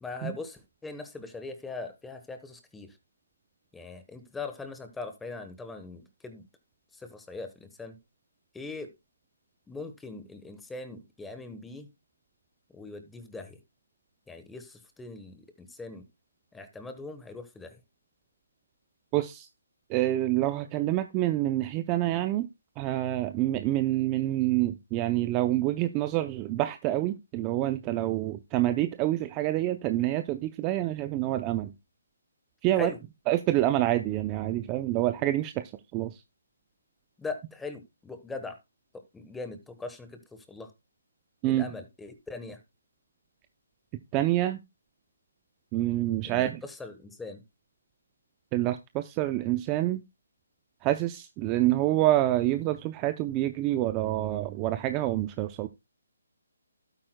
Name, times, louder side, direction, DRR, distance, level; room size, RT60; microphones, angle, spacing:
voice 1, 0.0-3.0 3.7-6.4 6.9-8.0 8.5-8.9 9.7-11.9 12.7-13.6 14.3-16.0 16.5-17.8 32.8-33.0 37.2-38.6 39.1-40.7 41.5-42.6 46.2-47.4, left 3 dB, 5° left, 1.1 m, -41 dB
voice 2, 19.1-19.5 19.9-22.5 22.8-31.7 32.6-32.9 33.3-36.2 41.4-41.7 44.1-44.6 45.7-46.6 48.5-50.0 50.8-55.7, right 15 dB, 15° right, 0.5 m, -27 dB
12.0 x 8.9 x 2.2 m
hypercardioid pair, 165°, 0 cm